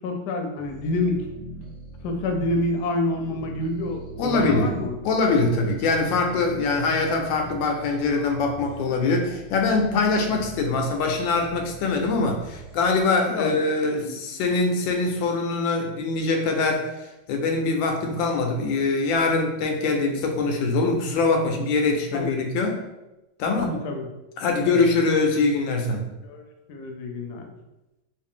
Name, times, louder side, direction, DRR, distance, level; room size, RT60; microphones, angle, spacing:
voice 1, 0.0-1.3 2.0-5.1 13.3-14.2 22.1-22.3 23.6-24.1 24.7-24.8 26.2-27.5, left 2 dB, 70° left, 3 dB, 1.1 m, -28 dB
sound 1, 0.6-13.1, right 2 dB, 30° left, 0.7 m, -42 dB
voice 2, 4.2-4.7 5.0-16.9 17.3-22.8 23.4-23.7 24.4-26.1, left 3 dB, 90° left, 3 dB, 1.3 m, -23 dB
3.2 x 2.6 x 3.6 m, 0.99 s
omnidirectional pair, 2.0 m